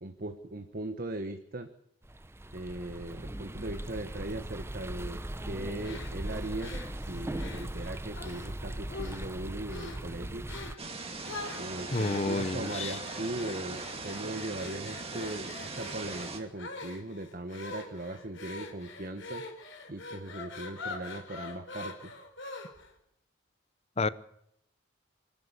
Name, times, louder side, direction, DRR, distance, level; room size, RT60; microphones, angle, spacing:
voice 1, 0.0-1.7 2.5-10.5 11.6-19.4 19.9-22.1, right 2 dB, 45° right, 7 dB, 1.4 m, -39 dB
sound 1, 2.0-10.7, right 1 dB, 15° right, 0.7 m, -39 dB
sound 2, 5.8-8.5 8.9-9.4 9.7-10.1 10.5-10.8 11.2-22.9, left 3 dB, 65° left, 4.5 m, -44 dB
sound 3, 10.8-16.4, right 3 dB, 30° right, 2.6 m, -40 dB
voice 2, 11.9-12.9 24.0-24.1, left 3 dB, 30° left, 16 dB, 0.8 m, -29 dB
25.5 x 13.0 x 8.3 m, 0.76 s
head